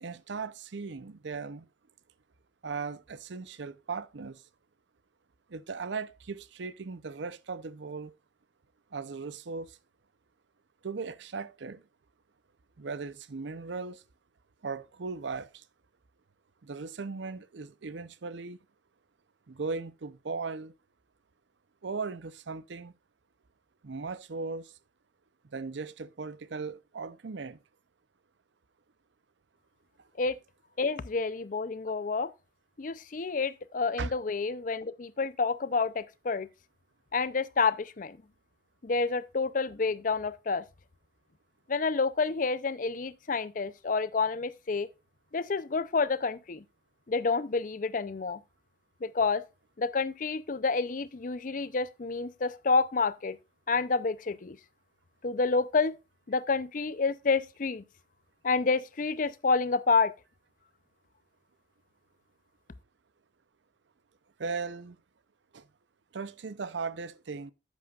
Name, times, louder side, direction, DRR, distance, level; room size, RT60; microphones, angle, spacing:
voice 1, 0.0-1.7 2.6-4.4 5.5-8.1 8.9-9.8 10.8-11.8 12.8-14.0 14.6-15.6 16.6-18.6 19.5-20.7 21.8-22.9 23.8-24.7 25.5-27.6 34.0-34.1 64.4-65.0 65.5-65.7 66.1-67.5, right 4 dB, 70° right, 0.6 m, -37 dB
voice 2, 30.8-32.3 32.8-36.5 37.1-38.2 38.8-40.6 41.7-44.9 45.3-46.6 47.1-48.4 49.0-49.4 49.8-53.4 53.7-54.6 55.2-56.0 56.3-57.8 58.4-60.1, left 4 dB, 45° left, 0.5 m, -29 dB
10.5 x 8.3 x 2.4 m
head